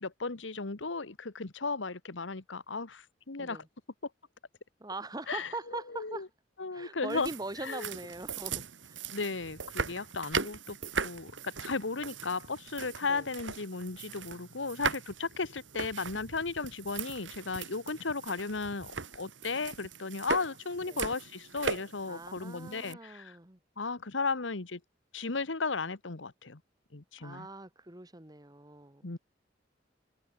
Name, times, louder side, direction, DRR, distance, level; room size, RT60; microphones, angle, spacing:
voice 1, 0.0-3.6 5.3-6.3 6.6-7.3 7.6-7.9 9.1-10.8 11.0-23.4 23.8-24.8 25.1-26.6 26.9-27.5 29.0-29.2, left 4 dB, 90° left, 1.4 m, -35 dB
voice 2, 4.8-6.3 6.7-9.0 13.0-13.3 20.9-21.0 22.1-23.6 27.2-29.2, right 2 dB, 20° right, 2.1 m, -42 dB
sound 1, 7.1-22.9, right 5 dB, 85° right, 2.6 m, -39 dB
head